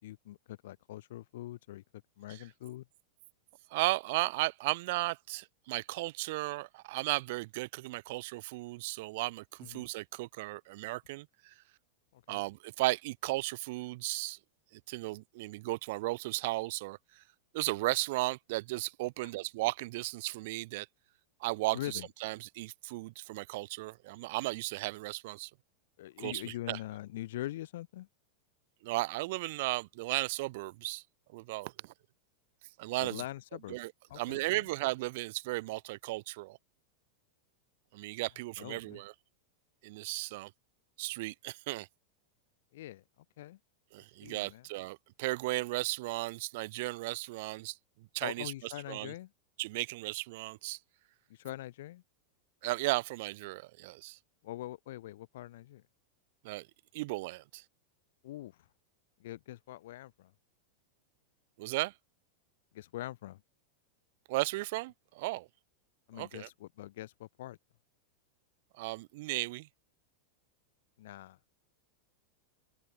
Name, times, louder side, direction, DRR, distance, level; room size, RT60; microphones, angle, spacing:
voice 1, 0.0-1.8 2.2-2.9 9.6-9.9 12.1-12.4 21.7-22.1 26.0-28.1 33.0-33.8 34.1-34.6 38.6-39.0 42.7-43.0 43.4-43.6 44.2-44.6 48.2-49.3 51.3-52.0 54.4-55.8 58.2-58.5 59.2-60.3 62.7-63.4 66.1-67.6 71.0-71.4, left 15 dB, 55° left, 0.5 m, -43 dB
voice 2, 3.7-11.5 12.3-14.4 14.7-17.2 17.5-20.9 21.4-25.5 26.2-26.8 28.8-31.0 31.3-31.9 32.8-33.2 33.7-36.6 37.9-39.1 39.8-40.5 41.0-41.9 43.9-49.1 49.6-50.8 52.6-54.2 56.4-56.7 56.9-57.6 61.6-61.9 64.3-65.5 66.1-66.5 68.8-69.7, right 21 dB, 50° right, 0.4 m, -35 dB
open air
figure-of-eight pair, 90°, 0 cm